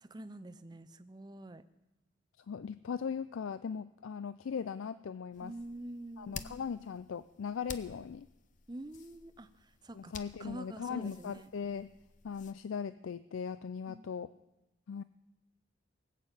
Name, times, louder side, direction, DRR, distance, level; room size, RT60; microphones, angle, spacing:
voice 1, 0.0-1.6 5.4-6.6 8.7-9.5 9.8-10.1 10.4-11.5 13.9-14.1, right 1 dB, 20° right, 12 dB, 0.5 m, -46 dB
voice 2, 2.4-5.6 6.2-8.3 9.9-11.9 12.2-14.3 14.9-15.0, left 6 dB, 85° left, 14 dB, 0.4 m, -39 dB
sound 1, 5.3-12.5, left 6 dB, 40° left, 0.6 m, -51 dB
18.5 x 7.5 x 8.1 m, 0.99 s
head